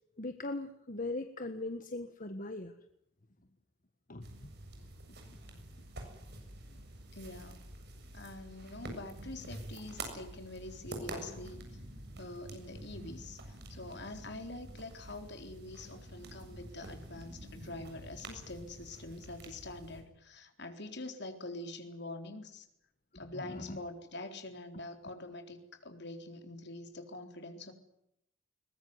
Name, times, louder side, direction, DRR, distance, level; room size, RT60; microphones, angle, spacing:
voice 1, 0.2-2.7 4.1-4.5 23.3-23.8, left 2 dB, 45° left, 8 dB, 1.5 m, -40 dB
sound 1, 4.2-20.0, right 1 dB, 60° right, 7.3 m, -48 dB
voice 2, 7.1-7.6 8.1-11.8 12.2-22.7 23.1-27.7, left 2 dB, 60° left, 6 dB, 3.9 m, -45 dB
22.0 x 21.0 x 9.6 m, 0.79 s
head